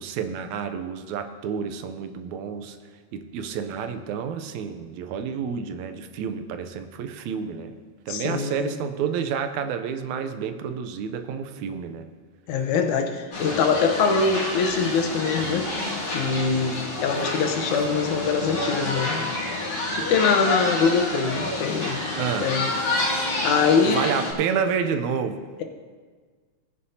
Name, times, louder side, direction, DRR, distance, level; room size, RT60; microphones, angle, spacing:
voice 1, 0.0-2.8 3.1-7.8 8.1-12.1 22.2-22.5 23.9-25.5, right 7 dB, 80° right, 8 dB, 2.0 m, -29 dB
voice 2, 8.1-8.7 12.5-15.7 16.1-19.3 20.0-22.0 22.4-23.1 23.4-24.1, left 5 dB, 90° left, 4 dB, 2.4 m, -23 dB
sound 1, 13.3-24.3, left 2 dB, 45° left, 3.1 m, -28 dB
19.5 x 9.2 x 2.8 m, 1.5 s
omnidirectional pair, 3.3 m